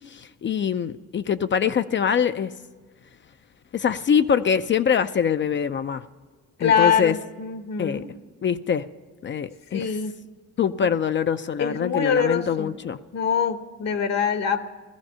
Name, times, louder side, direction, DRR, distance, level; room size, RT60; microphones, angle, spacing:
voice 1, 0.1-2.5 3.7-6.1 6.6-7.1 7.8-8.0 8.4-8.9 9.2-10.0 10.6-13.0, left 7 dB, 40° left, 11 dB, 0.5 m, -24 dB
voice 2, 6.6-8.1 9.7-10.1 11.6-12.7 13.1-14.6, left 7 dB, 60° left, 9 dB, 1.1 m, -24 dB
16.5 x 14.0 x 5.5 m, 1.4 s
cardioid pair, 90°, 30 cm